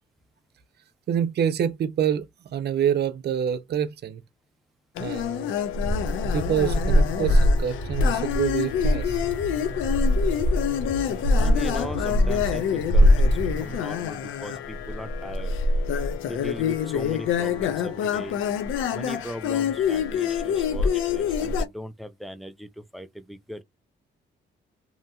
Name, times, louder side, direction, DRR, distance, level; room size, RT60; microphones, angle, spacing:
voice 1, 1.1-2.3 2.5-4.2 5.0-5.5 6.3-9.2, right 9 dB, 55° right, 0.5 m, -26 dB
sound 1, 5.0-21.7, left 3 dB, 85° left, 0.5 m, -24 dB
sound 2, 5.8-13.8, equal, 65° left, 1.5 m, -35 dB
voice 2, 11.0-15.5 16.2-18.4 18.9-23.6, equal, ahead, 0.4 m, -38 dB
2.8 x 2.7 x 2.2 m
cardioid pair, 90°, 20 cm